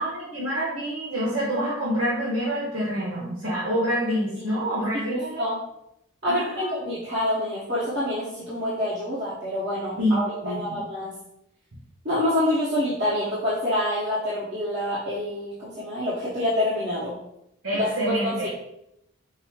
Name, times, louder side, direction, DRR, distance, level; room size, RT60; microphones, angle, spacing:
voice 1, 0.0-5.4 6.3-6.7 10.0-10.2 10.4-10.8 17.6-18.5, equal, 85° right, -7 dB, 1.2 m, -27 dB
voice 2, 5.1-5.6 6.2-11.1 12.0-17.1 17.7-17.9 18.2-18.5, left 1 dB, 50° right, -11 dB, 1.3 m, -27 dB
5.4 x 2.0 x 4.6 m, 0.80 s
head